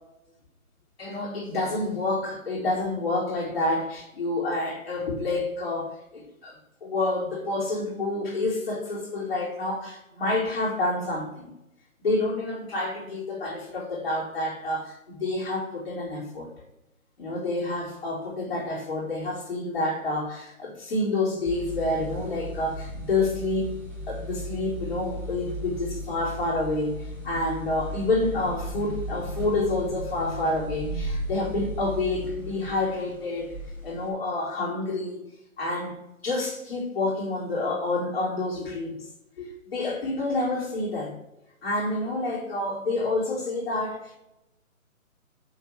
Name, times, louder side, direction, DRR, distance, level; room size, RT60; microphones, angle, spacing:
voice 1, 1.0-11.5 12.0-16.5 17.2-23.7 24.1-26.9 27.2-33.5 33.8-35.2 35.6-39.0 39.4-41.1 41.6-44.2, left 2 dB, 45° left, 4.6 m, -28 dB
sound 1, 21.5-34.1, equal, 5° left, 1.6 m, -36 dB
8.1 x 7.6 x 6.2 m
figure-of-eight pair, 155°, 42 cm